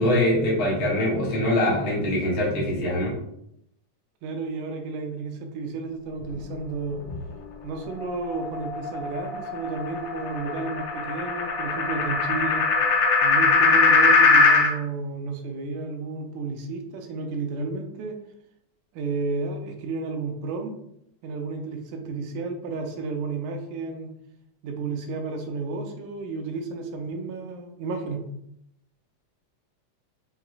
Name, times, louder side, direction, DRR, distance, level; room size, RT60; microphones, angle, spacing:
voice 1, 0.0-3.2, left 1 dB, 60° left, -4 dB, 0.9 m, -23 dB
voice 2, 4.2-7.0 7.6-12.7 13.2-18.2 18.9-20.7 21.2-24.1 24.6-28.2, right 4 dB, 85° right, 4 dB, 2.0 m, -32 dB
sound 1, 8.0-14.7, left 4 dB, 90° left, 1.3 m, -21 dB
5.8 x 2.8 x 2.4 m, 0.77 s
omnidirectional pair, 3.5 m